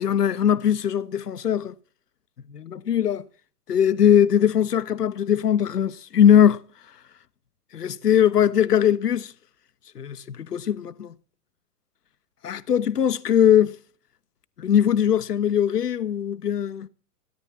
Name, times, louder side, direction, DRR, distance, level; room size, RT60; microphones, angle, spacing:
voice 1, 0.0-1.7 2.5-3.3 3.7-6.6 6.9-7.0 7.7-9.3 9.9-11.1 12.4-13.8 14.6-16.9, left 9 dB, 80° left, 1.0 m, -20 dB
17.0 x 11.0 x 7.2 m
hypercardioid pair, 125°, 46 cm